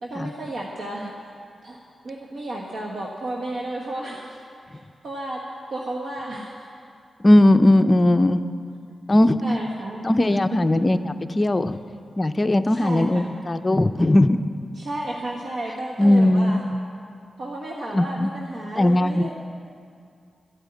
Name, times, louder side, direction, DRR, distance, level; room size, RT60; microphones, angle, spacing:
voice 1, 0.0-1.3 1.6-1.8 2.0-4.4 4.7-5.4 5.7-6.7 9.4-10.0 10.5-10.6 12.7-13.3 14.7-16.7 17.4-19.3, right 1 dB, 80° right, -2 dB, 1.4 m, -32 dB
voice 2, 7.2-8.4 9.1-9.4 10.0-11.8 12.2-14.4 16.0-16.6 17.9-18.3 18.8-19.3, left 1 dB, 25° left, 9 dB, 0.5 m, -18 dB
13.0 x 8.8 x 9.4 m, 2.4 s
wide cardioid pair, 95°, 0 cm